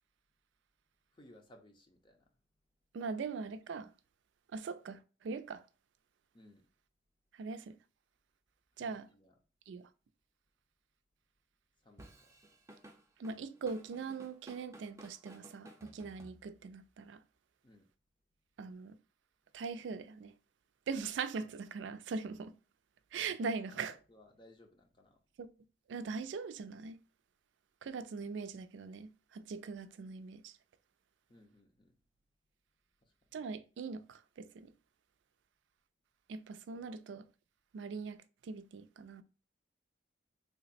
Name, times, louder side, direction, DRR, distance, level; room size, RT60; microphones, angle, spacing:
voice 1, 1.1-2.3 6.3-6.7 8.8-9.3 11.8-12.3 17.6-17.9 23.7-25.2 31.3-31.9 33.0-33.1 36.7-36.8, left 1 dB, 25° left, 0.6 m, -61 dB
voice 2, 2.9-3.9 4.5-5.6 7.3-7.8 8.8-9.1 9.7-9.9 13.2-17.2 18.6-19.0 19.5-20.3 20.9-22.5 23.1-23.9 25.4-25.5 25.9-27.0 27.8-30.6 33.3-34.7 36.3-37.2 37.7-39.2, right 5 dB, 85° right, 0.3 m, -41 dB
Drum kit / Drum, 12.0-16.8, right 1 dB, 15° right, 0.6 m, -56 dB
3.4 x 2.0 x 4.0 m
head